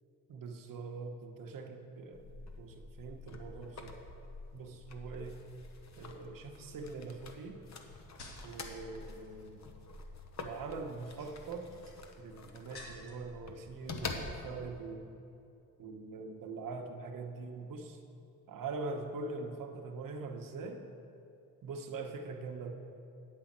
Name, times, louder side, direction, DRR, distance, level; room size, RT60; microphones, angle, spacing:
voice 1, 0.3-2.2 2.6-4.0 4.5-5.4 6.0-7.6 8.4-9.7 10.4-11.7 12.2-15.2 15.8-18.0 18.5-20.8 21.6-22.7, right 3 dB, 60° right, 4 dB, 1.0 m, -43 dB
sound 1, 2.1-14.8, left 3 dB, 45° left, 0.9 m, -47 dB
sound 2, 5.4-5.7 6.4-8.8 9.1-9.6 10.9-13.3 13.6-14.3 14.5-14.8, left 2 dB, 80° left, 2.1 m, -55 dB
9.7 x 5.3 x 7.4 m, 2.7 s
cardioid pair, 105°, 38 cm